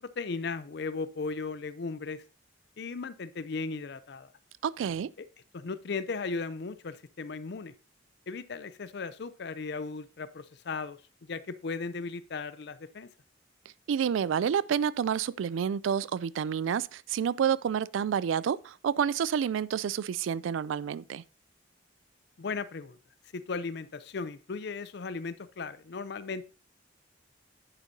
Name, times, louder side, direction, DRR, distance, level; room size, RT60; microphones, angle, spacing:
voice 1, 0.0-2.2 2.8-4.3 5.2-5.3 5.5-7.7 8.3-13.1 22.4-23.0 23.3-26.4, left 4 dB, 60° left, 0.5 m, -36 dB
voice 2, 4.6-5.1 13.9-21.2, right 8 dB, 90° right, 0.3 m, -29 dB
10.0 x 8.1 x 2.7 m
head